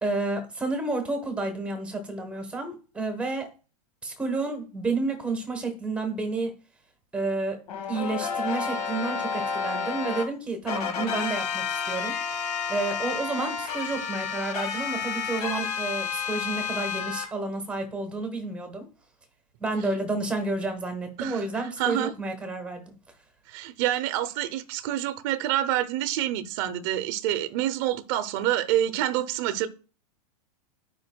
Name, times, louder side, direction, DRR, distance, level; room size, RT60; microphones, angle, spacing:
voice 1, 0.0-3.5 4.0-6.5 7.1-7.6 7.9-12.2 12.7-18.9 19.6-22.9, right 3 dB, 5° right, 1.1 m, -30 dB
sound 1, 7.7-10.2 10.7-17.2, left 6 dB, 75° left, 1.9 m, -30 dB
voice 2, 21.8-22.1 23.5-29.7, right 12 dB, 35° right, 0.6 m, -27 dB
11.5 x 5.1 x 2.2 m
supercardioid pair, 170°, 20 cm